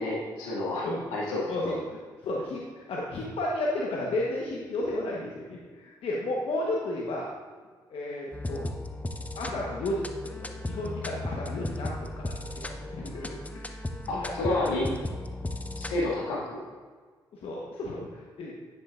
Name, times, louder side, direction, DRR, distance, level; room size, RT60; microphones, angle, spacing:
voice 1, 0.0-1.5 14.1-14.9 15.8-16.6, left 2 dB, 85° left, -5 dB, 2.1 m, -30 dB
voice 2, 1.5-7.3 7.9-8.7 9.4-10.0 10.3-13.6 14.1-14.7 17.3-18.5, left 1 dB, 65° left, -3 dB, 1.2 m, -33 dB
sound 1, 8.3-16.1, left 2 dB, 15° left, 0.8 m, -36 dB
9.5 x 8.5 x 2.5 m, 1.5 s
hypercardioid pair, 45°, 11 cm